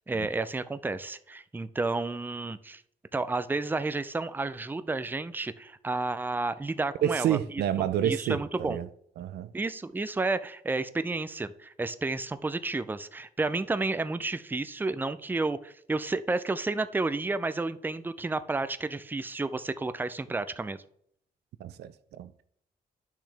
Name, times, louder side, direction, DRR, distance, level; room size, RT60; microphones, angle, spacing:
voice 1, 0.1-2.8 3.1-7.4 7.8-8.8 9.5-20.8, right 3 dB, 10° right, 0.4 m, -31 dB
voice 2, 7.0-8.9 9.2-9.5 21.6-22.4, right 11 dB, 90° right, 0.4 m, -29 dB
10.0 x 6.2 x 3.4 m
cardioid pair, 95°, 16 cm